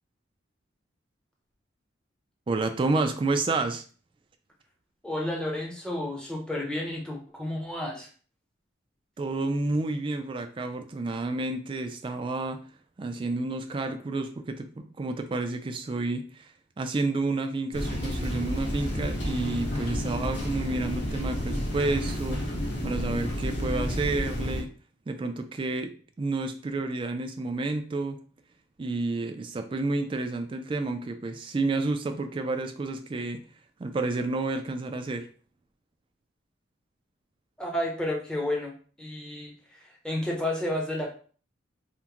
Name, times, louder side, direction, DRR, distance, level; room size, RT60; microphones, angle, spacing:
voice 1, 2.5-3.8 9.2-12.6 13.0-16.5 16.8-22.4 22.8-24.7 25.1-25.9 26.2-28.2 28.8-33.4 33.8-35.3, right 3 dB, 25° right, 6 dB, 0.3 m, -30 dB
voice 2, 5.0-8.1 37.6-41.1, left 1 dB, 5° left, -1 dB, 0.6 m, -31 dB
sound 1, 17.7-24.6, equal, 65° left, 1.0 m, -31 dB
3.5 x 2.1 x 2.8 m, 0.41 s
head